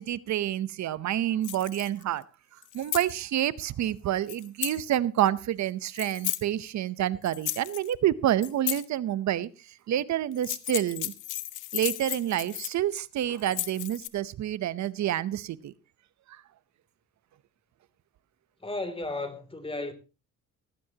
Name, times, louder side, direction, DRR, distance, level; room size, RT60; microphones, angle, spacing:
voice 1, 0.0-2.2 2.7-9.5 9.9-11.1 11.7-15.7, right 12 dB, 65° right, 0.8 m, -28 dB
sound 1, 1.4-2.0 2.6-3.1 4.3-4.8 5.9-6.4 7.3-7.9 8.4-8.8 10.3-13.0 13.4-14.1, left 15 dB, 85° left, 1.1 m, -34 dB
voice 2, 18.6-19.9, left 2 dB, 20° left, 2.9 m, -34 dB
17.0 x 15.5 x 2.9 m
cardioid pair, 90°, 30 cm